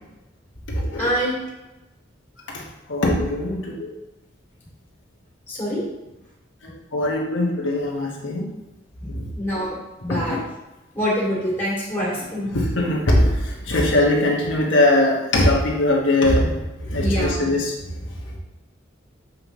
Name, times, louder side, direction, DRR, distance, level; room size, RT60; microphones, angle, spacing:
voice 1, 1.0-1.4 5.5-5.8 9.4-10.4 10.9-12.5 17.0-17.5, equal, 10° left, -7 dB, 2.5 m, -25 dB
voice 2, 2.9-3.9 6.9-8.5 10.1-10.4 12.5-13.3 13.7-16.5 16.9-17.7, left 1 dB, 75° left, -2 dB, 1.2 m, -20 dB
7.3 x 5.4 x 3.1 m, 0.99 s
head